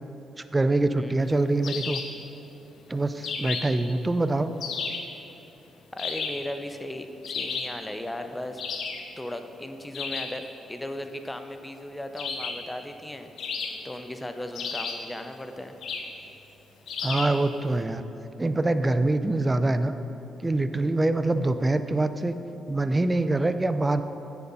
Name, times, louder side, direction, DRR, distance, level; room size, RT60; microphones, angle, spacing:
voice 1, 0.5-2.0 2.9-4.5 17.0-18.0 18.4-19.9 20.4-22.3 22.7-24.0, right 2 dB, 25° right, 11 dB, 0.5 m, -24 dB
sound 1, 1.6-2.2 3.2-3.8 4.6-5.1 6.0-6.5 7.2-7.8 8.6-9.1 9.9-10.4 12.2-12.7 13.4-14.0 14.5-15.1 15.8-16.2 16.9-17.4, left 5 dB, 70° left, 0.9 m, -33 dB
voice 2, 5.9-8.6 9.2-13.3 13.8-15.8 23.4-23.5, left 1 dB, 15° left, 7 dB, 0.8 m, -37 dB
9.1 x 7.0 x 5.4 m, 3.0 s
supercardioid pair, 60°, 0 cm